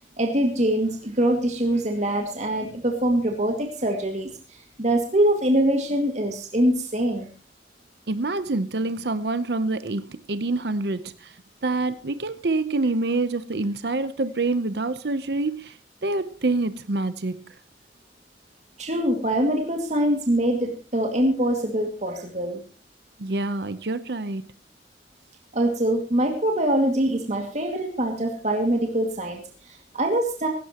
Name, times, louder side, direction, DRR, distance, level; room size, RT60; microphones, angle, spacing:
voice 1, 0.2-7.3 18.8-22.6 25.5-30.5, right 1 dB, 40° right, 3 dB, 2.2 m, -24 dB
voice 2, 8.1-11.4 11.6-17.5 23.2-24.5, right 2 dB, 60° right, 13 dB, 0.8 m, -26 dB
17.0 x 17.0 x 3.0 m, 0.35 s
head